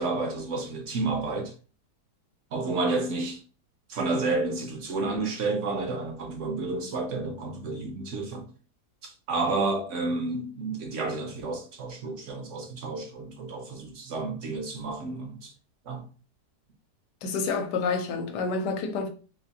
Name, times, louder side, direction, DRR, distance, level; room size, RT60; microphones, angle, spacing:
voice 1, 0.0-1.5 2.5-3.4 3.9-8.5 9.0-15.5 15.9-16.0, right 3 dB, 60° right, 0.8 m, -30 dB
voice 2, 17.2-19.1, left 4 dB, 80° left, 1.2 m, -28 dB
3.8 x 2.5 x 2.7 m
omnidirectional pair, 1.8 m